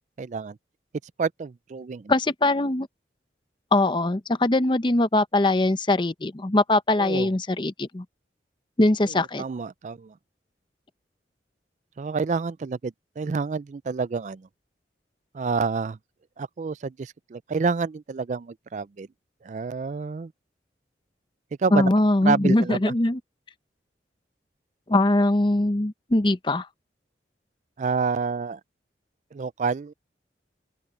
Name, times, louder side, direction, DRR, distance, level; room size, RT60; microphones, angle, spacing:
voice 1, 0.2-0.6 1.2-2.1 7.0-7.3 9.4-10.1 12.0-14.5 15.3-16.0 16.4-19.1 19.4-20.3 21.6-21.9 22.2-22.9 27.8-28.6 29.3-29.9, right 4 dB, 40° right, 0.4 m, -28 dB
voice 2, 2.1-2.9 3.7-8.0 8.8-9.4 21.7-23.2 24.9-26.7, left 2 dB, 25° left, 0.7 m, -22 dB
open air
head